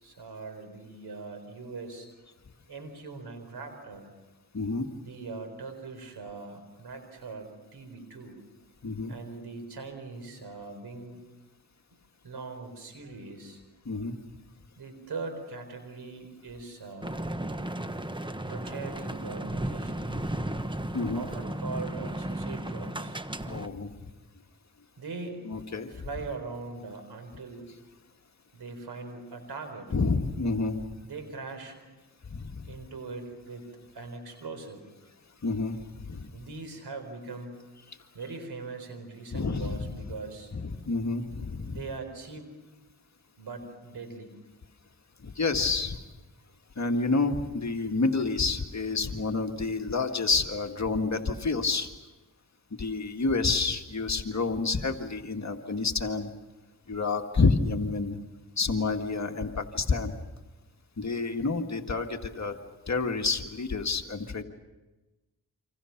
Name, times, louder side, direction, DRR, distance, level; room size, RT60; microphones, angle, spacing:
voice 1, 0.0-2.1 2.7-4.1 5.0-8.4 9.1-11.2 12.2-13.6 14.8-17.2 18.4-20.2 21.1-23.2 25.0-25.4 25.9-27.7 28.5-29.9 31.0-31.8 32.6-33.7 33.9-34.8 36.3-37.6 38.1-40.5 41.6-42.5 43.4-44.4, right 3 dB, 85° right, 8 dB, 4.4 m, -41 dB
voice 2, 4.5-4.9 8.8-9.1 13.9-14.2 20.9-21.2 23.4-23.9 25.5-26.1 29.9-30.8 32.3-32.6 35.4-36.3 39.3-40.1 40.6-41.8 45.2-46.0 46.8-51.9 52.8-56.3 56.9-58.2 58.6-60.1 61.0-62.5 62.9-64.4, left 3 dB, 45° left, 4 dB, 1.8 m, -29 dB
sound 1, 17.0-23.7, right 1 dB, 15° right, 1.2 m, -34 dB
27.5 x 26.5 x 5.9 m, 1.1 s
cardioid pair, 65°, 38 cm